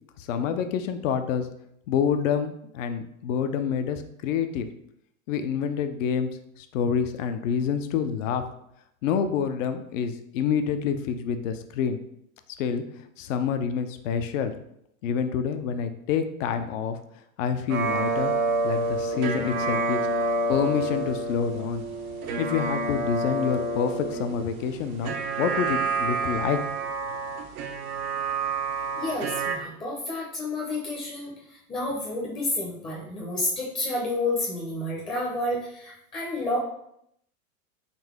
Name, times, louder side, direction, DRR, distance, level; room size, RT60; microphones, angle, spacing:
voice 1, 0.3-1.5 1.9-4.7 5.3-6.3 6.6-8.4 9.0-12.0 12.6-12.8 13.2-14.5 15.0-17.0 17.4-18.3 18.6-20.0 20.5-21.8 22.4-26.6, left 7 dB, 65° left, 9 dB, 0.6 m, -27 dB
sound 1, 17.7-29.6, right 3 dB, 85° right, 0.8 m, -28 dB
voice 2, 29.0-36.6, left 2 dB, 10° left, -4 dB, 0.6 m, -30 dB
4.0 x 2.6 x 3.6 m, 0.74 s
hypercardioid pair, 130°, 42 cm